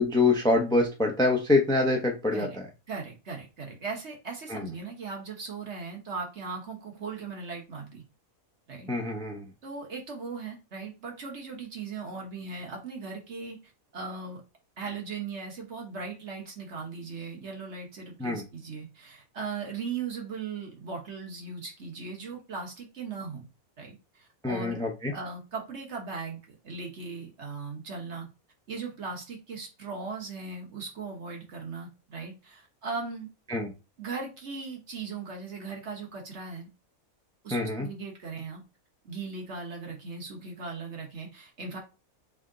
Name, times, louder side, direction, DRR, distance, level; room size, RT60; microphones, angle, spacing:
voice 1, 0.0-2.6 4.5-4.7 8.9-9.4 18.2-18.4 24.4-25.1 33.5-33.7 37.5-37.9, left 2 dB, 5° left, 2 dB, 0.7 m, -25 dB
voice 2, 2.9-8.0 8.7-8.9 9.6-13.6 13.9-14.4 14.8-23.5 23.8-28.3 28.7-33.3 34.0-36.7 37.4-38.6 39.0-41.8, right 4 dB, 55° right, 1 dB, 1.4 m, -38 dB
3.6 x 3.4 x 3.8 m, 0.29 s
omnidirectional pair, 1.5 m